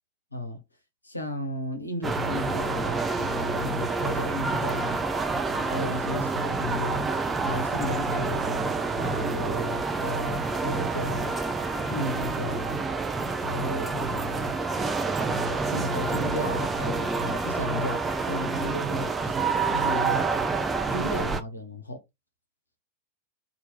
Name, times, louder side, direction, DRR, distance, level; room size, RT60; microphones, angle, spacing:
voice 1, 0.3-0.6 1.0-5.0 5.6-7.1 7.4-11.3 11.9-12.8 13.4-14.6 15.3-19.4 19.7-20.3 20.9-22.0, left 1 dB, 85° left, 0.8 m, -34 dB
sound 1, 2.0-21.4, right 4 dB, 15° right, 0.4 m, -28 dB
2.9 x 2.4 x 3.2 m
figure-of-eight pair, 90°, 0 cm